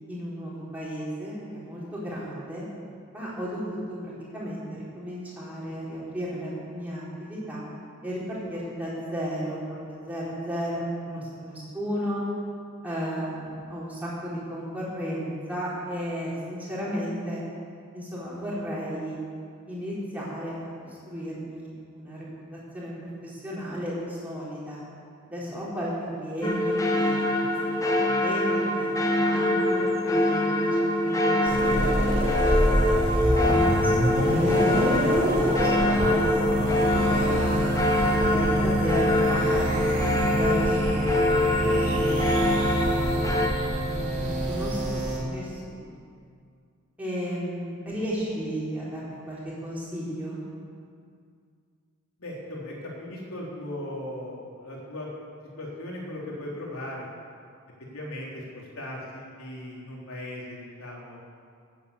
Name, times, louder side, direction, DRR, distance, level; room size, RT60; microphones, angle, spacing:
voice 1, 0.1-2.6 3.1-7.6 8.0-9.6 9.9-12.2 12.8-17.4 17.9-19.2 19.7-22.2 22.5-22.9 23.2-24.8 25.2-25.9 26.2-27.4 27.9-32.7 33.4-37.5 38.0-42.6 43.8-46.0 47.0-50.4, equal, 5° right, -8 dB, 4.1 m, -34 dB
sound 1, 26.4-43.5, left 1 dB, 15° left, 1.2 m, -24 dB
sound 2, 31.5-45.2, right 1 dB, 35° right, 4.0 m, -26 dB
voice 2, 52.2-55.1 55.6-57.0 57.9-61.2, left 1 dB, 90° left, -3 dB, 3.7 m, -38 dB
14.5 x 8.6 x 8.3 m, 2.2 s
head